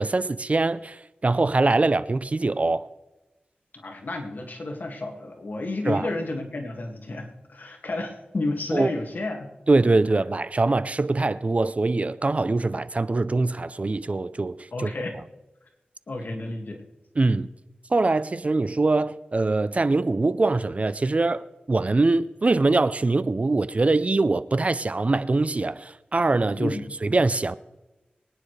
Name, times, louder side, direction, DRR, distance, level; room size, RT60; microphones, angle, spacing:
voice 1, 0.0-2.9 5.9-6.1 8.7-8.9 9.7-14.6 14.8-14.9 17.2-17.5 17.9-26.8 27.0-27.5, right 3 dB, 45° right, 0.5 m, -23 dB
voice 2, 3.8-9.5 14.7-15.2 16.1-16.8 26.6-26.8, left 2 dB, 65° left, 2.1 m, -31 dB
23.0 x 9.8 x 3.3 m
wide cardioid pair, 65°, 3 cm